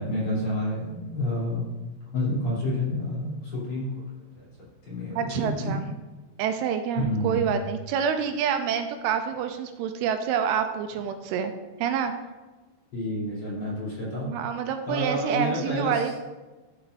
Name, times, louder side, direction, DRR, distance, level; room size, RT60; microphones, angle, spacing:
voice 1, 0.0-1.7 2.1-4.0 4.3-4.5 4.9-5.8 7.0-7.4 12.9-14.3 14.9-16.0, left 1 dB, 35° left, -8 dB, 3.8 m, -29 dB
voice 2, 5.2-5.8 6.4-11.5 11.8-12.1 14.3-16.2, right 7 dB, 85° right, 7 dB, 2.4 m, -27 dB
14.0 x 7.0 x 2.6 m, 1.2 s
omnidirectional pair, 4.9 m